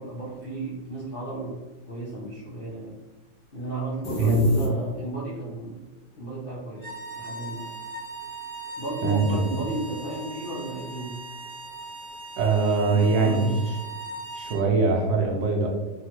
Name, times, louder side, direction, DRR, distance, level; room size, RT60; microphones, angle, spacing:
voice 1, 0.0-3.0 3.5-5.9 6.1-7.7 8.8-11.2 12.9-13.6, right 2 dB, 85° left, -7 dB, 0.4 m, -34 dB
sound 1, 4.0-5.3, left 2 dB, 70° left, 1.2 m, -31 dB
sound 2, 6.7-14.6, right 2 dB, 40° left, 1.1 m, -39 dB
voice 2, 9.0-9.6 12.4-13.8 14.3-15.7, right 3 dB, 80° right, 1 dB, 1.3 m, -22 dB
3.5 x 2.2 x 2.8 m, 1.2 s
omnidirectional pair, 2.0 m